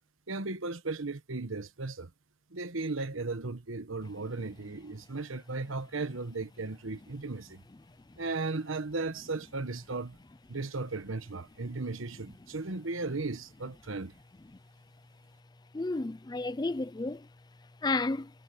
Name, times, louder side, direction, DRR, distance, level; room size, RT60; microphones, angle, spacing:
voice 1, 0.3-2.1 2.5-7.6 8.2-10.2 10.5-14.1, right 3 dB, 80° right, 1.2 m, -36 dB
voice 2, 15.7-17.3 17.8-18.3, left 2 dB, 20° left, 0.4 m, -31 dB
head